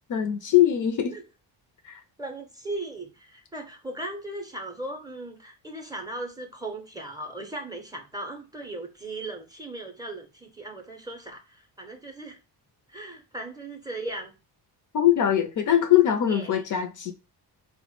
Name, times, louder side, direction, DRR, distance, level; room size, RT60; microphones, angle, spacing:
voice 1, 0.1-1.2 1.8-2.0 14.9-17.1, left 11 dB, 50° left, 0.4 m, -22 dB
voice 2, 2.2-12.4 12.9-14.3 16.3-16.6, right 2 dB, 10° right, 0.5 m, -37 dB
3.4 x 2.1 x 2.9 m
cardioid pair, 110°, 41 cm